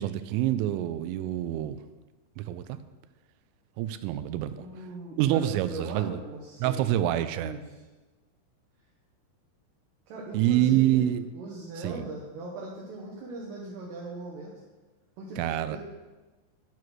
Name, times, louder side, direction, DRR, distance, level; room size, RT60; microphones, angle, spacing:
voice 1, 0.0-1.8 2.4-2.8 3.8-4.6 5.2-6.2 6.6-7.5 10.3-11.3 11.8-12.1 15.4-15.8, right 12 dB, 85° right, 11 dB, 3.1 m, -26 dB
voice 2, 4.6-6.9 7.4-7.6 10.1-11.1 11.3-14.5 15.2-15.4 15.7-15.8, right 2 dB, 70° right, -3 dB, 2.9 m, -39 dB
11.0 x 4.9 x 6.1 m, 1.2 s
omnidirectional pair, 5.8 m